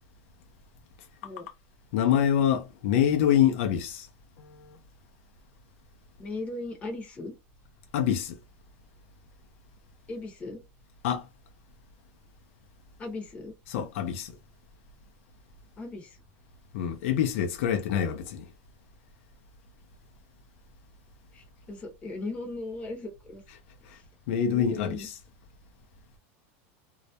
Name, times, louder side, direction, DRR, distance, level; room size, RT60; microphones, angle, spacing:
voice 1, 1.9-4.1 4.4-4.8 7.9-8.4 11.0-11.3 13.7-14.4 16.7-18.5 23.9-24.0 24.3-25.2, left 9 dB, 75° left, 0.5 m, -26 dB
voice 2, 6.2-7.3 10.1-10.6 13.0-13.5 15.8-16.2 21.3-23.4 23.9-24.0 24.4-25.1, left 2 dB, 20° left, 0.7 m, -38 dB
2.2 x 2.0 x 2.7 m
supercardioid pair, 150°, 7 cm